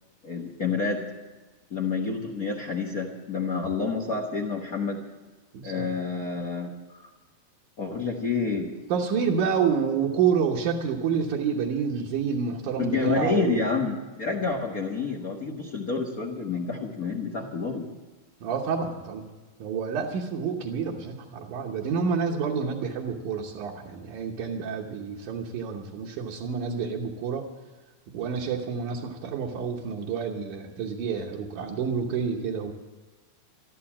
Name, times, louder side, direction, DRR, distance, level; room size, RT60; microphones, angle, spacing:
voice 1, 0.2-1.0 1.7-5.0 5.6-7.1 7.8-8.7 12.8-17.9, left 4 dB, 85° left, 0 dB, 0.7 m, -29 dB
voice 2, 5.5-5.9 8.9-13.6 18.4-19.3 19.6-27.5 28.1-32.7, right 6 dB, 65° right, -2 dB, 2.4 m, -28 dB
13.5 x 12.5 x 7.3 m, 1.2 s
omnidirectional pair, 4.0 m